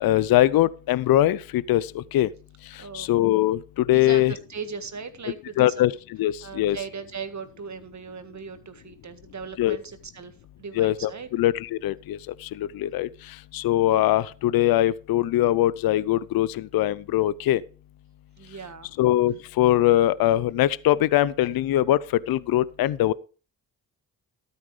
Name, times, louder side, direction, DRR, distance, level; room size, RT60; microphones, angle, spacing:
voice 1, 0.0-2.3 2.9-4.3 5.6-5.9 6.2-6.8 9.6-9.8 10.8-13.1 13.5-17.6 19.0-22.0 22.3-23.1, left 14 dB, 55° left, 0.6 m, -22 dB
voice 2, 2.8-3.1 3.9-5.8 6.4-11.3 18.4-18.9, right 5 dB, 40° right, 1.7 m, -38 dB
13.0 x 8.8 x 3.3 m
hypercardioid pair, 45°, 43 cm